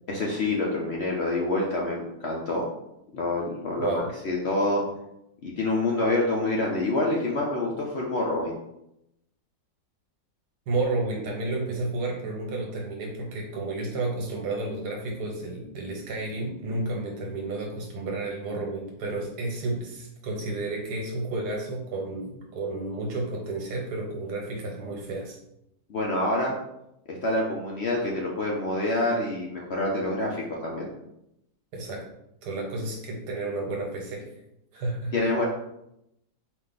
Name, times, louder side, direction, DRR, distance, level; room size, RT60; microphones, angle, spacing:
voice 1, 0.1-2.7 3.1-4.8 5.4-8.6 25.9-26.5 27.1-30.9 35.1-35.5, left 2 dB, 60° left, -2 dB, 0.7 m, -27 dB
voice 2, 3.8-4.1 10.7-25.4 31.7-32.0 32.4-34.3 34.7-35.1, right 2 dB, 80° right, 0 dB, 1.6 m, -31 dB
4.8 x 2.6 x 3.9 m, 0.82 s
omnidirectional pair, 1.8 m